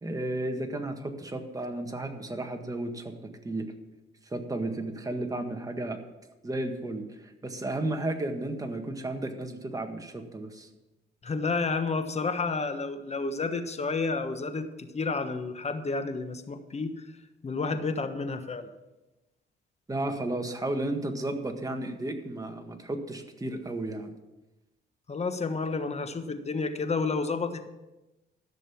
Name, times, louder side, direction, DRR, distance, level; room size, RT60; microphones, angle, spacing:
voice 1, 0.0-3.7 4.3-6.0 6.4-10.7 19.9-24.1, right 1 dB, 15° right, 5 dB, 1.7 m, -33 dB
voice 2, 11.2-16.9 17.4-18.7 25.1-27.7, left 4 dB, 35° left, 8 dB, 1.3 m, -30 dB
13.5 x 6.7 x 7.0 m, 1.0 s
cardioid pair, 90°, 20 cm